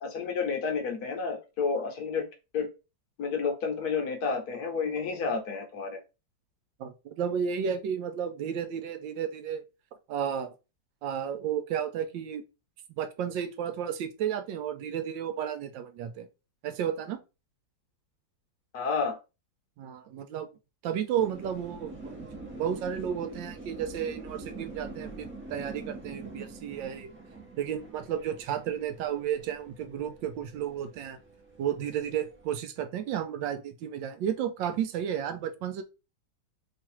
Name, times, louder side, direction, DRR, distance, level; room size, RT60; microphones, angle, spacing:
voice 1, 0.0-2.3 2.5-2.7 3.2-6.0 18.7-19.2, left 5 dB, 65° left, 1.2 m, -30 dB
voice 2, 6.8-9.6 10.1-10.5 11.0-12.4 13.0-16.3 16.6-17.2 19.8-20.5 20.8-27.1 27.6-31.2 31.6-35.8, right 9 dB, 85° right, 1.3 m, -32 dB
sound 1, 21.2-32.5, right 3 dB, 15° right, 0.5 m, -45 dB
3.2 x 2.5 x 4.3 m
omnidirectional pair, 2.0 m